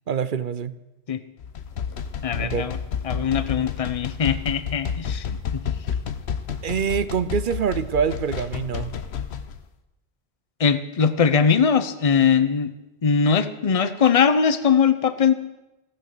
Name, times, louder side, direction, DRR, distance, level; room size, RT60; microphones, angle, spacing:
voice 1, 0.1-0.8 2.4-2.7 6.6-8.9, right 7 dB, 55° right, 15 dB, 0.8 m, -25 dB
sound 1, 1.4-9.6, left 7 dB, 80° left, 1.1 m, -30 dB
voice 2, 2.2-2.8 3.0-5.6 10.6-12.7 13.0-15.3, left 6 dB, 35° left, 12 dB, 0.8 m, -21 dB
15.0 x 9.1 x 6.8 m, 0.97 s
omnidirectional pair, 1.1 m